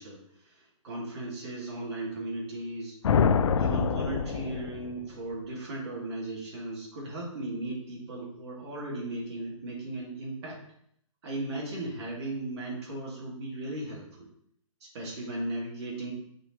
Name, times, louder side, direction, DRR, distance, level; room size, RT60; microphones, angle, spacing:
voice 1, 0.0-3.0 3.6-10.6 11.2-14.3 14.8-16.1, right 2 dB, 55° right, -4 dB, 2.4 m, -36 dB
sound 1, 3.0-5.2, left 6 dB, 65° left, 0.5 m, -26 dB
5.1 x 4.4 x 4.4 m, 0.69 s
hypercardioid pair, 140°, 17 cm